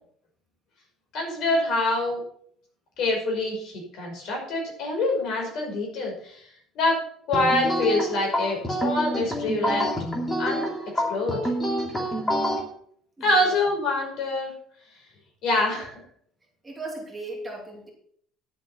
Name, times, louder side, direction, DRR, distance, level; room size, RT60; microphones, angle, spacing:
voice 1, 1.1-2.2 3.0-6.4 6.8-7.0 7.3-9.9 10.4-10.7 11.1-11.4 13.2-14.5 15.4-15.9, left 2 dB, 55° left, 1 dB, 5.3 m, -25 dB
sound 1, 7.3-12.6, equal, 15° left, 2.5 m, -27 dB
voice 2, 13.2-13.5 16.6-17.9, right 2 dB, 10° right, -2 dB, 2.7 m, -36 dB
11.5 x 7.7 x 5.7 m, 0.63 s
cardioid pair, 145°, 0 cm